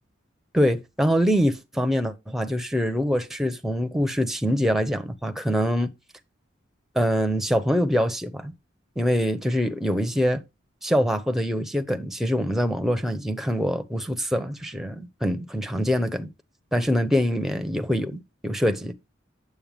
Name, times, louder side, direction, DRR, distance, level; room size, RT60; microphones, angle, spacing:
voice 1, 0.5-5.9 6.9-8.5 9.0-10.4 10.8-16.3 16.7-19.0, equal, ahead, 0.9 m, -24 dB
9.0 x 7.7 x 3.5 m
head